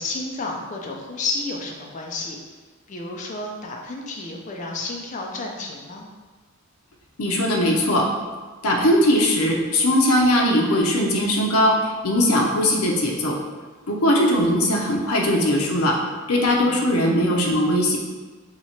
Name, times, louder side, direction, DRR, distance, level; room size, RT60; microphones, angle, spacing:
voice 1, 0.0-2.4 2.9-6.1 16.6-16.8, left 3 dB, 35° left, 0 dB, 0.4 m, -31 dB
voice 2, 7.2-8.1 8.6-13.4 13.9-16.0 16.3-18.0, left 1 dB, 80° left, 0 dB, 0.6 m, -20 dB
2.9 x 2.8 x 4.3 m, 1.4 s
head